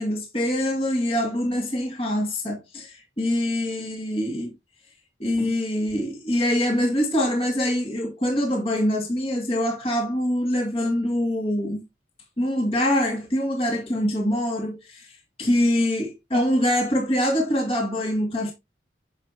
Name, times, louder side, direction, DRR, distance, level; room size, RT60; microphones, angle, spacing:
voice 1, 0.0-4.5 5.2-11.8 12.4-18.5, left 1 dB, 35° left, 2.5 m, -24 dB
10.5 x 6.6 x 3.0 m
head